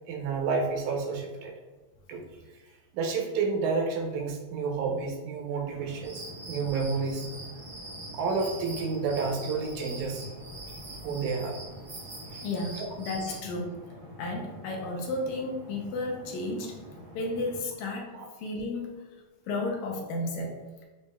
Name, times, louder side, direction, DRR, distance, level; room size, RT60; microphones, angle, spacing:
voice 1, 0.1-1.5 2.1-2.2 2.9-6.2 6.5-7.3 8.1-10.3 11.0-11.6 12.3-12.5 12.8-12.9 18.1-18.3, right 4 dB, 85° right, 1 dB, 2.2 m, -30 dB
sound 1, 5.7-17.6, equal, 60° left, 1.8 m, -47 dB
sound 2, 6.0-13.4, right 2 dB, 55° right, 0.9 m, -44 dB
voice 2, 12.4-13.8 14.2-16.8 17.1-19.0 19.5-20.9, left 2 dB, 80° left, 1 dB, 2.1 m, -33 dB
6.5 x 2.9 x 2.3 m, 1.2 s
omnidirectional pair, 3.3 m